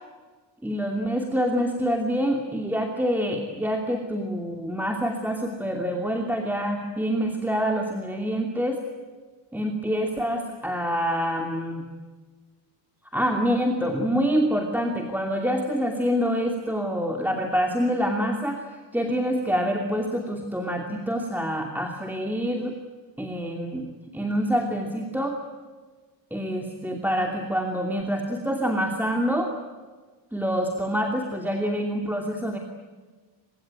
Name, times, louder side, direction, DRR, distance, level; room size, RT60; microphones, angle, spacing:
voice 1, 0.6-8.8 9.5-11.8 13.1-18.7 18.9-22.7 23.2-23.9 24.1-25.4 26.3-29.5 30.3-32.6, equal, 5° right, 2 dB, 2.8 m, -26 dB
25.0 x 22.5 x 9.2 m, 1.3 s
cardioid pair, 125°, 43 cm